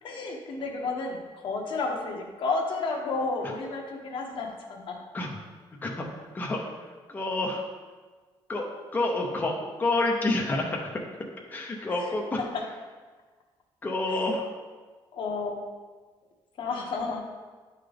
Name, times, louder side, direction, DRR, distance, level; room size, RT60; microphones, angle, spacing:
voice 1, 0.0-1.2 1.4-5.0 11.9-12.6 14.1-14.3 15.1-15.6 16.6-17.2, left 3 dB, 60° left, 1 dB, 1.0 m, -32 dB
voice 2, 7.1-7.6 8.5-8.6 8.9-10.8 11.5-12.4 13.8-14.5, left 2 dB, 20° left, -1 dB, 0.7 m, -28 dB
10.5 x 3.8 x 3.4 m, 1.4 s
cardioid pair, 160°, 10 cm